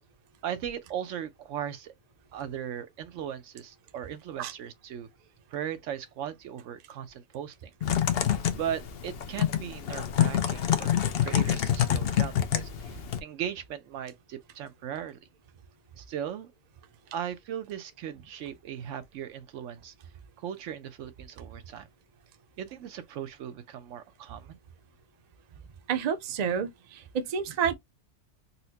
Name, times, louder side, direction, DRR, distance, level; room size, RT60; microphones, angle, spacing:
voice 1, 0.4-1.9 2.3-5.1 5.5-7.7 8.5-10.9 11.2-15.2 16.0-16.5 17.1-19.9 20.4-21.9 22.6-24.6, right 9 dB, 85° right, 1.0 m, -38 dB
Typing, 7.8-13.2, left 10 dB, 60° left, 0.7 m, -27 dB
voice 2, 25.9-27.8, right 7 dB, 45° right, 0.5 m, -29 dB
4.2 x 2.0 x 2.7 m
omnidirectional pair, 1.3 m